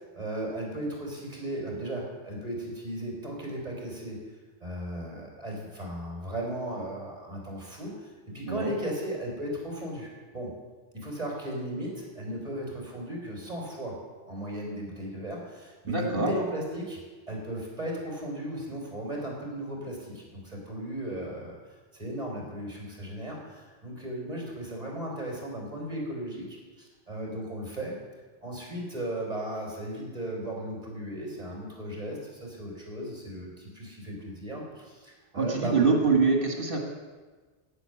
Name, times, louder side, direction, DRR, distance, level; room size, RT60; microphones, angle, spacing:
voice 1, 0.1-4.2 4.6-10.6 10.9-14.0 14.3-17.0 17.3-21.6 21.9-27.9 28.4-35.8, right 1 dB, 35° right, -2 dB, 3.9 m, -36 dB
voice 2, 15.9-16.3 35.3-36.8, right 4 dB, 60° right, 2 dB, 2.1 m, -24 dB
9.9 x 9.2 x 7.8 m, 1.3 s
omnidirectional pair, 1.1 m